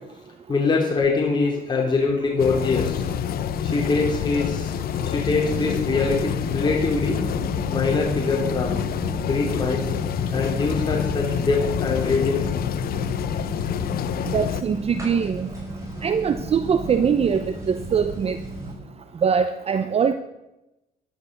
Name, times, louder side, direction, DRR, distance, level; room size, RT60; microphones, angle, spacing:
voice 1, 0.5-3.1 3.6-7.2 7.7-8.9 9.2-10.0 10.3-12.6, left 4 dB, 25° left, -1 dB, 2.9 m, -23 dB
sound 1, 2.4-14.6, left 9 dB, 60° left, 0.8 m, -27 dB
sound 2, 5.4-18.7, right 1 dB, 20° right, 6.4 m, -35 dB
voice 2, 14.3-15.5 16.0-18.4 19.2-20.1, right 6 dB, 35° right, 11 dB, 0.8 m, -22 dB
13.5 x 12.0 x 6.5 m, 0.96 s
cardioid pair, 110°, 17 cm